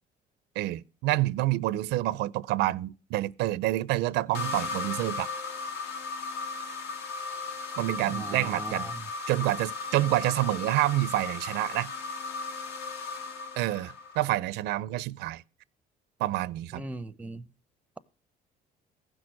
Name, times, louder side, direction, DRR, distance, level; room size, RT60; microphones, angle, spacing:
voice 1, 0.6-5.3 7.8-8.9 9.3-11.9 13.6-15.4 16.2-16.8, right 16 dB, 90° right, 0.5 m, -28 dB
sound 1, 4.3-14.3, left 4 dB, 75° left, 2.1 m, -36 dB
voice 2, 8.1-9.0 16.7-17.5, right 2 dB, 10° right, 0.5 m, -39 dB
15.0 x 6.2 x 6.2 m
cardioid pair, 110°, 17 cm